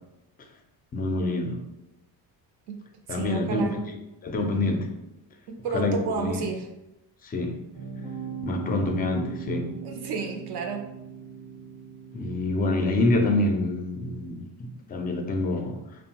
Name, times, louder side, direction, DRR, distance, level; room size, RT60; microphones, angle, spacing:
voice 1, 0.9-1.6 3.1-3.9 4.2-4.9 5.7-6.5 7.2-7.6 8.4-9.7 12.1-15.8, left 2 dB, 25° left, 4 dB, 0.3 m, -26 dB
voice 2, 3.1-3.8 5.5-6.7 9.8-10.9, right 4 dB, 70° right, 4 dB, 0.5 m, -31 dB
sound 1, 7.7-13.2, right 6 dB, 90° right, 1.0 m, -39 dB
2.7 x 2.1 x 2.8 m, 0.89 s
cardioid pair, 95°, 43 cm